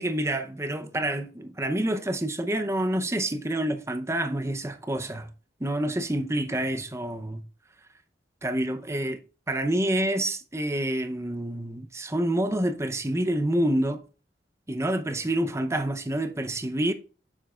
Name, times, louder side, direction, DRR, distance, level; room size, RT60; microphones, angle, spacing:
voice 1, 0.0-5.3 5.6-7.4 8.4-9.2 9.5-14.0 14.7-16.9, right 1 dB, 15° right, 0.7 m, -27 dB
8.4 x 7.2 x 2.4 m
head